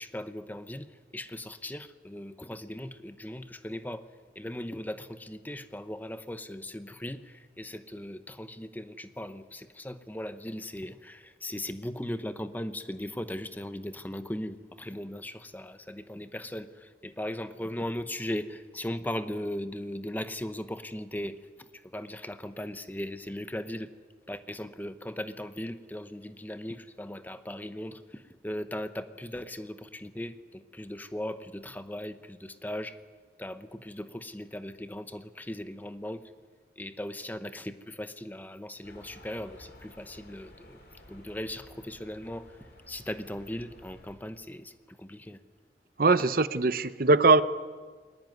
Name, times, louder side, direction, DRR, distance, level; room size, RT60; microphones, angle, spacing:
voice 1, 0.0-4.1 4.3-24.0 24.3-33.0 33.4-36.2 36.8-40.8 41.1-45.4, left 1 dB, 10° left, 11 dB, 0.9 m, -38 dB
sound 1, 38.8-44.2, left 1 dB, 65° left, 4.7 m, -53 dB
voice 2, 46.0-47.4, right 3 dB, 55° right, 14 dB, 0.7 m, -21 dB
21.5 x 18.5 x 9.4 m, 1.5 s
head